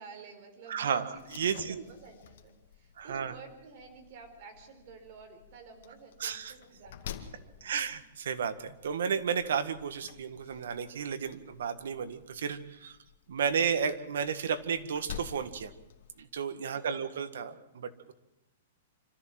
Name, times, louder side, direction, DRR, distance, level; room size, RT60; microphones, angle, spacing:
voice 1, 0.0-1.3 1.5-8.1 16.7-17.1, right 4 dB, 40° right, 4 dB, 4.5 m, -52 dB
voice 2, 0.7-1.8 3.0-3.3 6.2-6.5 7.6-13.0 13.3-15.7 16.2-18.1, right 7 dB, 70° right, 11 dB, 1.8 m, -33 dB
Slam, 1.1-16.2, left 10 dB, 55° left, 2.1 m, -50 dB
26.5 x 14.0 x 7.7 m, 0.95 s
hypercardioid pair, 175°, 0 cm